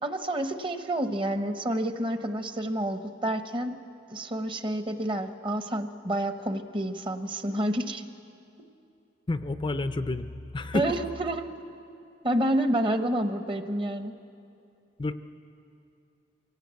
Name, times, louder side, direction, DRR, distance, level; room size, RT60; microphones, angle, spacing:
voice 1, 0.0-3.8 4.1-8.0 8.6-8.7 10.7-11.5 12.2-14.1, right 1 dB, 25° right, 8 dB, 0.9 m, -29 dB
voice 2, 9.3-11.0 15.0-15.1, left 2 dB, 25° left, 10 dB, 0.5 m, -30 dB
23.5 x 17.5 x 8.2 m, 2.6 s
head